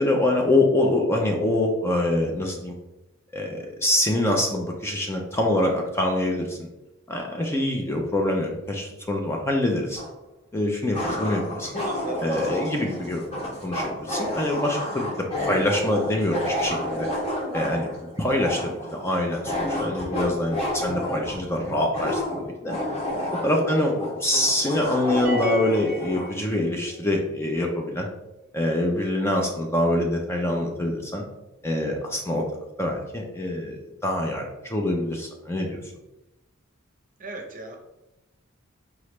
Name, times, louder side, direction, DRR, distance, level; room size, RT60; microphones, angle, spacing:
voice 1, 0.0-2.7 3.3-6.7 7.1-10.0 10.5-11.7 12.2-13.3 13.6-17.1 17.5-17.9 18.2-22.8 23.4-28.1 28.5-31.2 31.6-32.4 32.8-35.8, left 1 dB, 10° left, 1 dB, 0.5 m, -25 dB
sound 1, 10.0-10.1 10.9-26.3, left 1 dB, 30° left, 1.1 m, -30 dB
voice 2, 11.8-12.2 23.5-23.6 37.2-37.8, right 3 dB, 40° right, 2 dB, 0.7 m, -37 dB
sound 2, 25.2-27.0, left 1 dB, 10° right, 1.1 m, -31 dB
4.8 x 3.2 x 3.1 m, 0.93 s
head